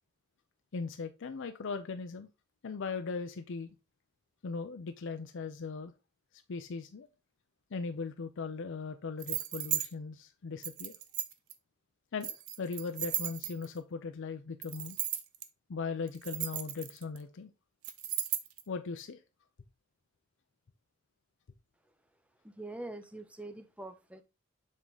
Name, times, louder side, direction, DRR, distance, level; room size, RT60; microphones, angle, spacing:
voice 1, 0.7-2.3 2.6-3.7 4.4-5.9 6.5-7.1 7.7-10.9 12.1-15.0 15.7-17.5 18.7-19.2, left 4 dB, 60° left, 8 dB, 0.5 m, -39 dB
sound 1, 9.2-9.9 10.6-11.5 12.2-13.8 14.6-15.4 16.1-17.2 17.8-18.6, right 12 dB, 85° right, 0.7 m, -35 dB
voice 2, 22.5-24.2, right 2 dB, 5° right, 9 dB, 0.6 m, -44 dB
7.3 x 3.6 x 3.8 m, 0.27 s
head